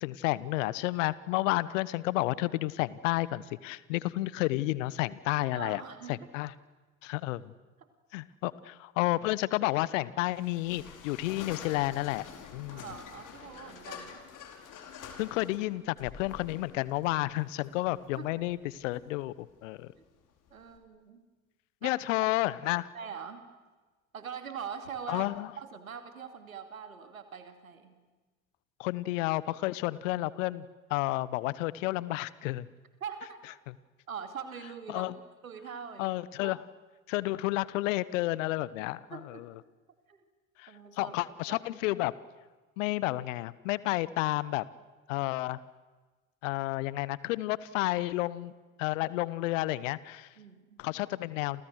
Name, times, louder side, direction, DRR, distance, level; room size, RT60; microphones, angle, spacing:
voice 1, 0.0-5.8 6.1-6.5 7.0-7.4 8.1-12.2 12.5-12.9 15.2-19.9 21.8-22.9 25.1-25.5 28.8-32.7 34.9-35.1 36.0-36.6 37.1-39.5 40.6-42.1 42.8-44.6 45.1-45.6 46.4-48.5 48.8-50.3 50.8-51.6, left 18 dB, 65° left, 19 dB, 1.2 m, -31 dB
voice 2, 5.5-6.2 7.8-7.9 12.7-14.2 18.1-18.4 20.5-21.2 21.8-22.0 22.9-23.5 24.1-25.2 25.6-27.9 33.0-33.4 34.1-35.1 35.4-36.2 36.4-36.5 39.1-39.4 40.1-40.2 40.7-41.1 41.5-41.6 50.4-50.8, right 7 dB, 85° right, 8 dB, 2.7 m, -42 dB
sound 1, 10.3-20.8, left 7 dB, 50° left, 5.0 m, -48 dB
29.5 x 28.5 x 6.5 m, 1.2 s
figure-of-eight pair, 70°, 41 cm